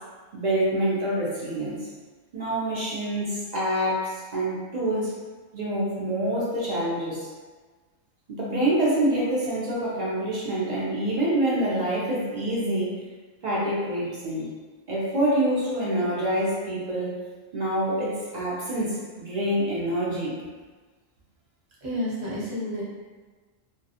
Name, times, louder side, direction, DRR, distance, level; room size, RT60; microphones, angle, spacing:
voice 1, 0.3-1.8 2.3-5.1 5.5-7.3 8.3-12.9 13.4-14.5 14.9-17.1 17.5-20.4, right 1 dB, 60° right, -7 dB, 0.4 m, -26 dB
voice 2, 21.8-22.8, left 1 dB, 40° right, -8 dB, 0.9 m, -30 dB
2.3 x 2.3 x 2.7 m, 1.4 s
omnidirectional pair, 1.4 m